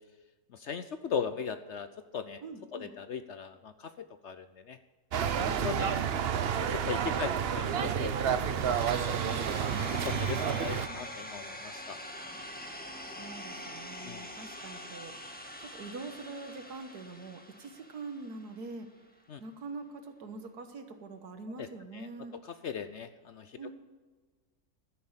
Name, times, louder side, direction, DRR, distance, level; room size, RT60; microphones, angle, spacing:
voice 1, 0.5-1.9 2.1-2.4 2.7-4.8 5.1-5.3 5.6-6.0 6.7-8.8 9.0-9.4 10.0-12.0 14.0-14.3 19.3-19.4 21.6-21.7 21.9-22.1 22.6-23.7, left 6 dB, 60° left, 11 dB, 0.8 m, -38 dB
voice 2, 2.4-2.9 5.4-6.2 8.9-11.1 13.1-15.2 15.6-18.9 19.4-22.4 23.6-23.7, right 3 dB, 80° right, 8 dB, 1.9 m, -44 dB
sound 1, 5.1-10.9, right 8 dB, 55° right, 0.7 m, -30 dB
sound 2, 8.6-18.6, left 1 dB, 5° left, 1.4 m, -44 dB
12.0 x 10.5 x 7.3 m, 1.4 s
omnidirectional pair, 1.7 m